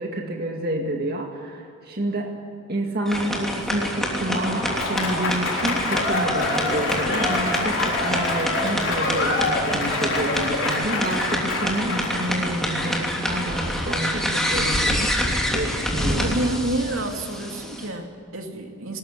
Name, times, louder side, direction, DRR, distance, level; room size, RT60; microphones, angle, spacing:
voice 1, 0.0-2.4 2.7-15.1 15.5-16.4, right 1 dB, 45° right, 1 dB, 2.2 m, -29 dB
sound 1, 3.1-17.9, equal, ahead, 3.0 m, -27 dB
Applause / Crowd, 4.1-12.3, left 2 dB, 55° left, 5.4 m, -26 dB
voice 2, 16.2-19.0, right 2 dB, 70° right, 3 dB, 2.8 m, -28 dB
20.5 x 20.0 x 9.9 m, 2.4 s
head